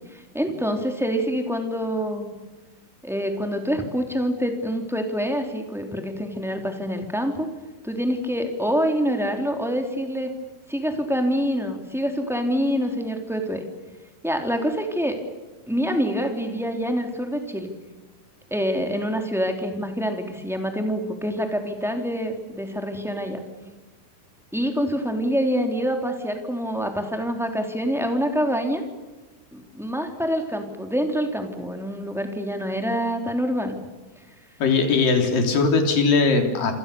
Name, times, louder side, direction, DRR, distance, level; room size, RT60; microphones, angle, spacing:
voice 1, 0.1-2.4 3.0-7.5 7.8-10.3 10.7-13.6 14.2-15.2 15.7-17.7 18.5-23.4 24.5-28.8 29.5-33.8, equal, ahead, 4 dB, 2.5 m, -26 dB
voice 2, 34.6-36.7, left 4 dB, 55° left, 4 dB, 4.9 m, -20 dB
27.5 x 25.5 x 7.0 m, 1.2 s
omnidirectional pair, 4.7 m